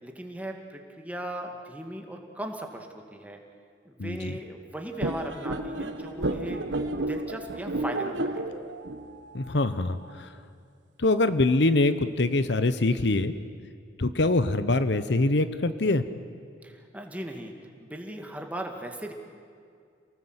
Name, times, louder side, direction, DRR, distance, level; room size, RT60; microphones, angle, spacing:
voice 1, 0.0-3.4 3.8-6.6 7.1-8.4 16.6-17.5 17.8-19.1, right 1 dB, 10° right, 3 dB, 2.1 m, -38 dB
voice 2, 4.0-4.4 9.3-10.4 11.0-13.3 14.0-16.0, left 2 dB, 65° left, 12 dB, 0.9 m, -24 dB
sound 1, 5.0-10.1, right 2 dB, 85° right, 1.5 m, -32 dB
28.0 x 19.0 x 8.1 m, 2.3 s
head